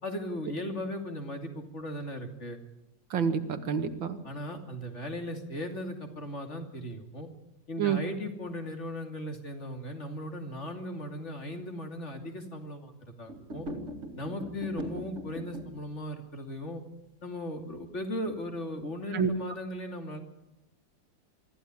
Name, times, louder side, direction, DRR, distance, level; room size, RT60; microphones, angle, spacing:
voice 1, 0.0-2.6 4.2-7.3 7.7-13.7 14.2-16.8 17.2-20.2, left 1 dB, 35° left, 5 dB, 3.0 m, -37 dB
voice 2, 3.1-4.2 7.8-8.0 19.1-19.3, right 7 dB, 90° right, 9 dB, 2.4 m, -28 dB
sound 1, 13.3-15.8, equal, 40° right, 2.4 m, -40 dB
24.0 x 14.5 x 9.8 m, 0.86 s
omnidirectional pair, 2.0 m